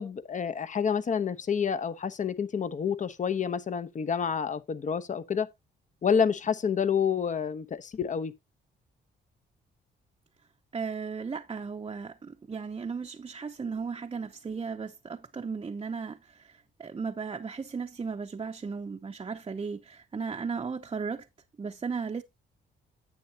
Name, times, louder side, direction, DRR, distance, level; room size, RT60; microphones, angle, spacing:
voice 1, 0.0-5.5 6.0-8.3, left 7 dB, 40° left, 0.9 m, -28 dB
voice 2, 10.7-21.3 21.6-22.2, right 5 dB, 25° right, 0.7 m, -36 dB
10.0 x 8.3 x 2.8 m
cardioid pair, 90°, 20 cm